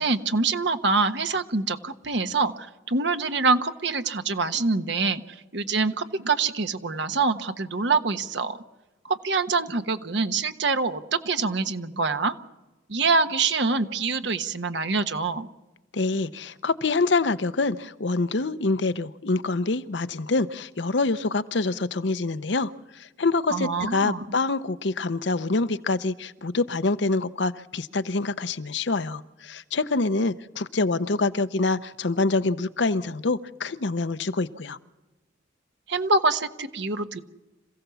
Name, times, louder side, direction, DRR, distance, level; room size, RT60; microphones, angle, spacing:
voice 1, 0.0-8.6 9.0-12.3 12.9-15.5 23.5-24.2 35.9-37.2, right 4 dB, 65° right, 9 dB, 1.2 m, -25 dB
voice 2, 15.9-34.8, left 3 dB, 65° left, 12 dB, 0.8 m, -26 dB
27.0 x 16.0 x 7.0 m, 1.1 s
head